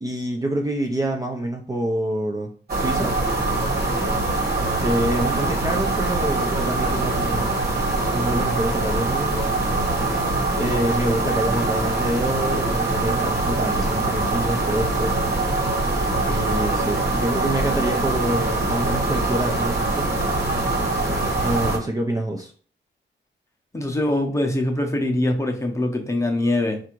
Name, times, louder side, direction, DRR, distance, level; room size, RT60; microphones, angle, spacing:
voice 1, 0.0-3.1 4.8-7.5 8.1-9.5 10.6-15.2 16.2-20.1 21.4-22.5, right 1 dB, 20° right, 1 dB, 0.4 m, -26 dB
sound 1, 2.7-21.8, right 2 dB, 50° right, 1.5 m, -23 dB
voice 2, 23.7-26.8, left 1 dB, 15° left, 2 dB, 0.7 m, -23 dB
4.6 x 2.5 x 4.4 m, 0.42 s
wide cardioid pair, 175°, 20 cm